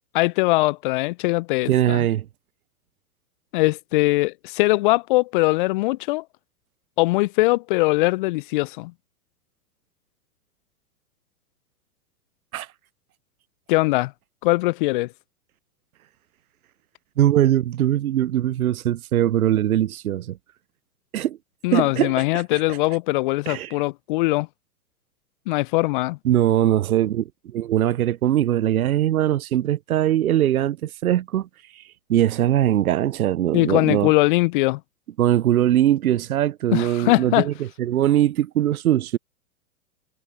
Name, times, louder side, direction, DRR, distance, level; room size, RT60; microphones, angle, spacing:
voice 1, 0.1-2.1 3.5-6.2 7.0-8.9 13.7-14.1 14.4-15.1 21.6-24.5 25.5-26.2 33.5-34.8 36.7-37.5, left 21 dB, 40° left, 0.5 m, -21 dB
voice 2, 1.7-2.3 12.5-12.7 17.2-20.4 21.1-21.4 21.7-22.6 23.5-23.7 26.2-27.3 27.5-31.5 31.7-31.8 32.1-34.1 35.2-37.5 37.8-39.2, right 12 dB, 75° right, 0.7 m, -21 dB
hypercardioid pair, 105°, 43 cm